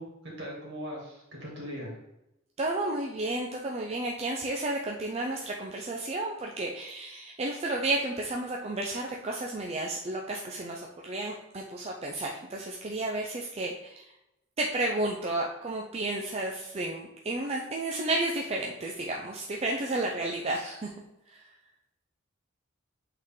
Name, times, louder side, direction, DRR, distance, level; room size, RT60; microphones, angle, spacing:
voice 1, 0.0-2.0, equal, 60° right, -3 dB, 2.5 m, -40 dB
voice 2, 2.6-14.1 14.6-20.9 21.3-21.5, right 2 dB, 30° right, 0 dB, 0.5 m, -32 dB
8.0 x 3.9 x 3.7 m, 0.90 s
head